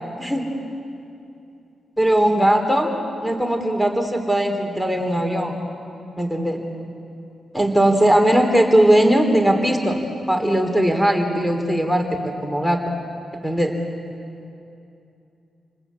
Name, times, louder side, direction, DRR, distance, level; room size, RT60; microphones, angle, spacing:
voice 1, 0.2-0.5 2.0-3.0 3.2-5.6 6.2-6.6 7.5-10.0 10.3-12.9 13.4-13.8, right 1 dB, ahead, 4 dB, 3.6 m, -19 dB
29.5 x 20.5 x 8.5 m, 2.7 s
supercardioid pair, 50°, 0 cm